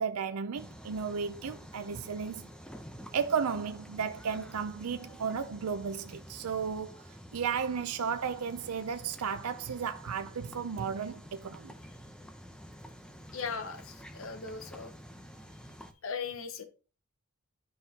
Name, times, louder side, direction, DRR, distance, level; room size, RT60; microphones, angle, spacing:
voice 1, 0.0-2.5 3.1-11.7, right 6 dB, 85° right, 0.5 m, -34 dB
sound 1, 0.6-15.9, equal, 5° left, 0.7 m, -49 dB
voice 2, 13.3-14.9 16.0-16.6, left 5 dB, 65° left, 0.9 m, -38 dB
11.0 x 5.4 x 2.9 m
head